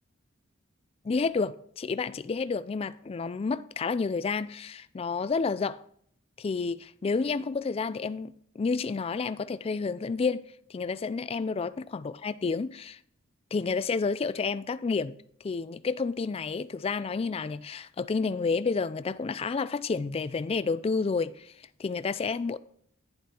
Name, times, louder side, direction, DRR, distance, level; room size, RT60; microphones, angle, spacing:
voice 1, 1.0-5.8 6.4-13.0 13.5-15.1 15.4-21.5 21.8-22.6, left 4 dB, 30° left, 0.3 m, -30 dB
11.0 x 10.0 x 2.9 m
head